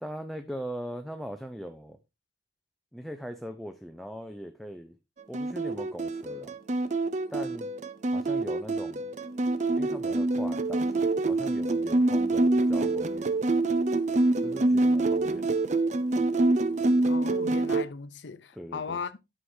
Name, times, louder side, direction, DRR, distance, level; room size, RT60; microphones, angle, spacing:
voice 1, 0.0-2.0 2.9-5.0 5.3-6.5 7.3-7.7 8.1-9.0 9.7-13.3 14.4-15.5 18.5-19.0, equal, ahead, 0.6 m, -40 dB
sound 1, 5.3-17.8, right 2 dB, 40° right, 0.5 m, -26 dB
voice 2, 17.0-19.2, left 5 dB, 85° left, 0.6 m, -37 dB
11.5 x 6.4 x 2.7 m
head